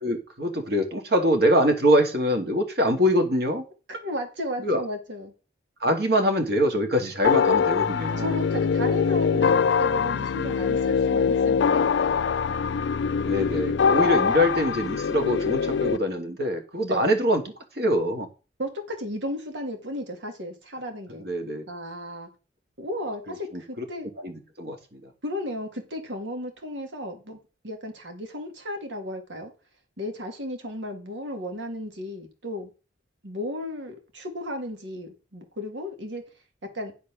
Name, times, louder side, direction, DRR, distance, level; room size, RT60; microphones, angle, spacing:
voice 1, 0.0-3.6 4.6-4.8 5.8-8.4 13.2-17.4 17.8-18.3 21.2-21.7 23.5-23.8 24.2-25.0, equal, 60° right, 2.0 m, -24 dB
voice 2, 3.9-5.3 8.2-12.3 16.8-17.1 18.6-21.3 21.7-22.3 22.8-24.1 25.2-27.4 27.6-29.5 30.0-32.7 33.2-36.2 36.7-36.9, left 1 dB, 80° right, 2.2 m, -34 dB
sound 1, 7.2-16.0, left 6 dB, 75° left, 0.4 m, -23 dB
10.5 x 4.6 x 6.1 m
head